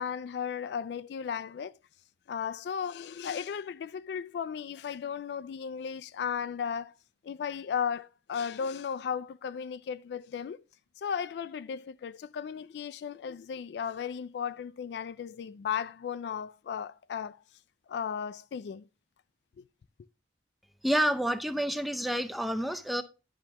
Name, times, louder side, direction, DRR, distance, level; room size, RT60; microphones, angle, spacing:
voice 1, 0.0-1.8 2.3-6.9 7.2-10.6 11.0-17.4 17.9-18.9 19.6-19.7, left 7 dB, 70° left, 0.3 m, -35 dB
voice 2, 20.8-23.0, equal, ahead, 0.4 m, -29 dB
10.5 x 5.8 x 2.9 m
head